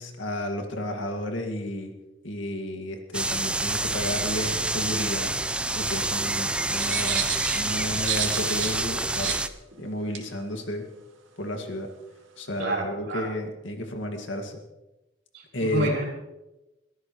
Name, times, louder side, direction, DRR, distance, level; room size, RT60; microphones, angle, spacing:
voice 1, 0.0-1.9 2.2-5.3 5.7-9.4 9.8-10.8 11.4-11.9 12.4-14.6 15.5-15.9, left 1 dB, 75° left, 4 dB, 2.2 m, -32 dB
sound 1, 3.1-9.5, right 2 dB, 5° right, 0.4 m, -27 dB
sound 2, 6.7-8.8 9.1-9.4 10.1-10.2, right 9 dB, 85° right, 2.4 m, -30 dB
voice 2, 12.6-13.3 15.3-16.1, right 1 dB, 55° right, -2 dB, 4.3 m, -29 dB
22.5 x 14.0 x 3.2 m, 0.98 s
head